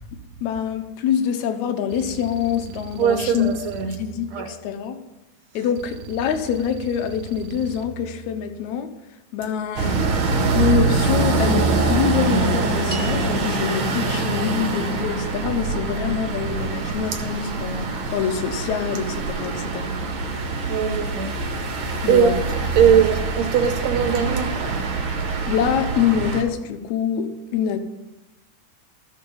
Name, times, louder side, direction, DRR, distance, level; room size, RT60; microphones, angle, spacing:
voice 1, 0.4-3.5 4.0-5.0 5.5-8.9 9.3-10.0 10.5-19.9 22.0-22.4 25.2-27.8, left 8 dB, 80° left, 8 dB, 2.1 m, -25 dB
sound 1, 1.9-5.0 5.8-9.0 9.8-12.7, right 6 dB, 90° right, 2.1 m, -40 dB
voice 2, 3.0-3.9 4.3-4.5 20.7-21.3 21.6-21.7 22.1-22.3 22.8-24.7, right 8 dB, 75° right, 4 dB, 1.9 m, -20 dB
sound 2, 9.8-26.4, right 3 dB, 55° right, 1.5 m, -24 dB
sound 3, 12.9-17.4, right 3 dB, 15° right, 1.6 m, -43 dB
13.5 x 4.6 x 5.4 m, 0.99 s
omnidirectional pair, 3.4 m